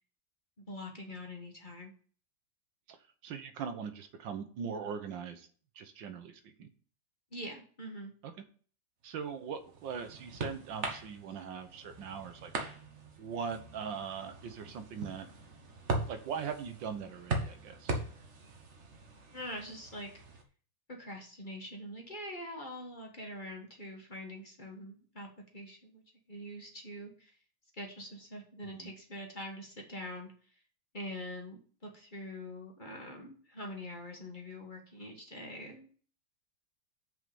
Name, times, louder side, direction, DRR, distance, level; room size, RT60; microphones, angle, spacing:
voice 1, 0.7-1.9 7.3-8.1 19.3-20.1 20.9-26.0 26.3-27.4 27.7-30.3 30.9-36.0, left 1 dB, 25° left, 1 dB, 1.5 m, -44 dB
voice 2, 3.2-5.5 5.7-6.7 8.2-8.3 9.0-12.5 13.2-15.3 16.1-18.0 28.8-28.9, right 6 dB, 80° right, 8 dB, 1.7 m, -40 dB
sound 1, 9.3-20.4, right 3 dB, 40° right, 1.4 m, -40 dB
6.5 x 5.3 x 7.0 m, 0.43 s
omnidirectional pair, 2.0 m